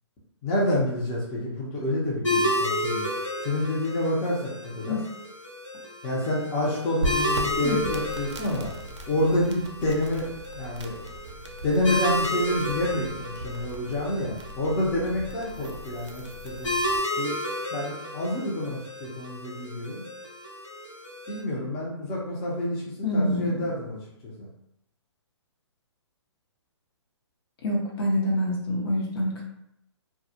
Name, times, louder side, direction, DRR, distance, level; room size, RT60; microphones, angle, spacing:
voice 1, 0.4-3.1 3.4-5.0 6.0-8.7 9.1-10.3 10.5-10.9 11.6-16.7 17.2-17.4 17.7-20.0 21.3-22.8 23.1-24.5, left 1 dB, 20° left, -5 dB, 0.6 m, -28 dB
sound 1, 2.2-21.4, equal, 90° left, 0.9 m, -32 dB
sound 2, 7.0-17.0, right 1 dB, 70° right, 0.5 m, -38 dB
voice 2, 23.0-23.7 27.6-29.4, left 1 dB, 50° left, -2 dB, 0.8 m, -26 dB
2.2 x 2.0 x 2.8 m, 0.78 s
figure-of-eight pair, 130°, 15 cm